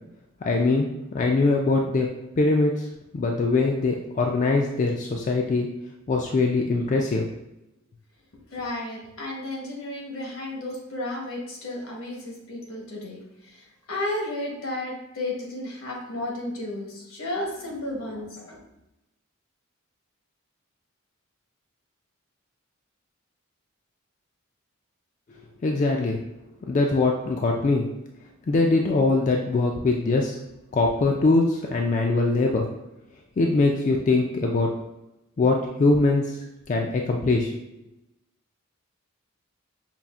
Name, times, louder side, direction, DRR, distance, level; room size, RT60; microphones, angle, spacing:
voice 1, 0.4-0.9 1.1-2.1 2.4-2.8 3.1-5.7 6.1-7.3 25.6-26.2 26.7-27.9 28.5-30.4 30.7-32.7 33.4-34.7 35.4-36.3 36.7-37.5, left 3 dB, 35° left, 1 dB, 0.3 m, -22 dB
voice 2, 8.5-13.6 13.9-18.6, left 1 dB, 75° left, -1 dB, 1.0 m, -33 dB
5.4 x 2.4 x 2.4 m, 0.91 s
head